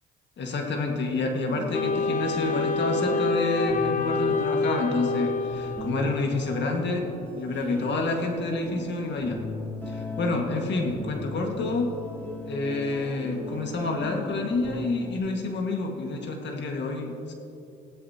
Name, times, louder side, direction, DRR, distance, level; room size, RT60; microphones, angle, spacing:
voice 1, 0.4-7.1 7.3-9.4 9.9-11.9 12.4-17.3, left 2 dB, 65° left, 2 dB, 1.7 m, -28 dB
sound 1, 1.5-15.2, left 2 dB, 10° left, 3.1 m, -38 dB
Wind instrument woodwind instrument, 1.7-6.3, left 4 dB, 40° left, 0.6 m, -27 dB
16.5 x 13.0 x 2.9 m, 2.7 s
cardioid pair, 90°, 20 cm